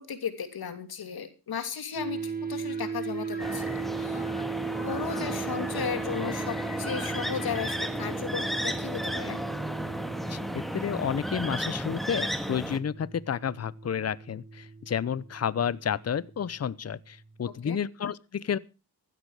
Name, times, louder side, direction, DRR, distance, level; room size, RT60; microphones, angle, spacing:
voice 1, 0.1-4.2 4.8-9.4 17.6-17.8, left 7 dB, 70° left, 2.9 m, -35 dB
Dist Chr A oct up, 1.9-17.2, right 5 dB, 25° right, 1.8 m, -38 dB
sound 1, 2.6-7.8, left 4 dB, 25° left, 3.3 m, -47 dB
sound 2, 3.4-12.8, equal, ahead, 1.8 m, -33 dB
voice 2, 10.3-18.6, left 8 dB, 40° left, 0.8 m, -31 dB
16.0 x 12.0 x 4.9 m
cardioid pair, 70°, 39 cm